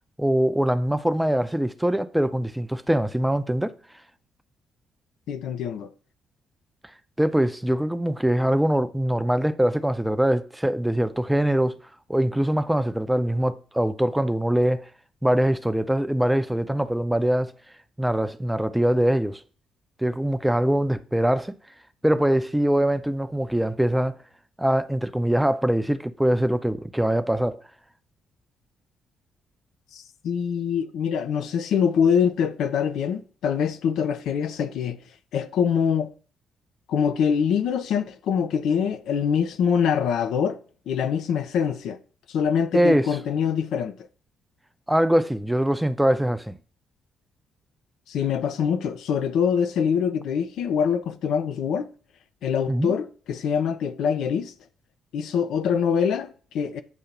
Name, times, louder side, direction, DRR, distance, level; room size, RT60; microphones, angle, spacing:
voice 1, 0.2-3.7 7.2-11.8 12.1-14.9 15.2-17.5 18.0-19.4 20.0-21.5 22.0-24.2 24.6-27.6 42.7-43.2 44.9-46.6 52.7-52.9, right 1 dB, 5° right, 0.6 m, -23 dB
voice 2, 5.3-5.9 29.9-35.0 35.3-36.1 36.9-40.6 40.9-42.0 42.3-43.9 48.1-51.9 52.4-54.5 55.1-56.8, left 7 dB, 65° left, 0.4 m, -24 dB
8.1 x 2.7 x 5.8 m
figure-of-eight pair, 40°, 0 cm